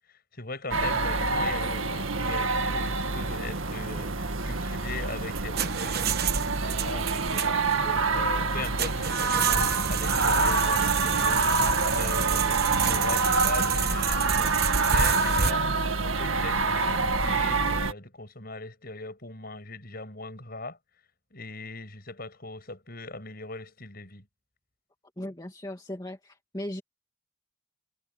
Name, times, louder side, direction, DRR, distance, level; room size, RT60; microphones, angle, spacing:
voice 1, 0.1-11.5 11.9-15.7 16.0-20.8 21.3-24.3, left 3 dB, 50° left, 8.0 m, -40 dB
sound 1, 0.7-17.9, right 3 dB, 80° right, 1.8 m, -26 dB
sound 2, 5.1-15.5, right 7 dB, 50° right, 1.3 m, -30 dB
voice 2, 7.8-8.1 25.2-26.8, left 1 dB, 20° left, 2.3 m, -38 dB
head